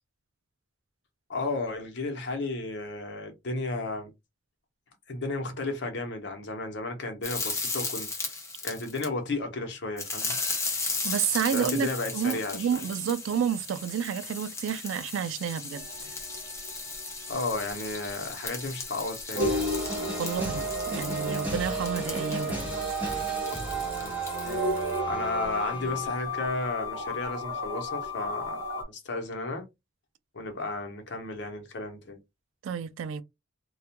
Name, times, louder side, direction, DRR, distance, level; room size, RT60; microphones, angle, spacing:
voice 1, 1.3-4.1 5.1-10.4 11.5-12.7 17.3-19.7 24.0-24.1 25.0-29.6 30.3-32.2, left 2 dB, 60° left, 0.7 m, -33 dB
sound 1, 7.2-9.1 10.0-25.0, left 4 dB, 15° left, 0.5 m, -36 dB
voice 2, 11.0-15.9 20.2-22.7 32.6-33.2, right 8 dB, 85° right, 0.3 m, -30 dB
sound 2, 15.7-28.8, right 1 dB, 55° right, 0.9 m, -34 dB
sound 3, 19.4-26.3, equal, 10° right, 1.0 m, -36 dB
2.3 x 2.1 x 2.8 m
head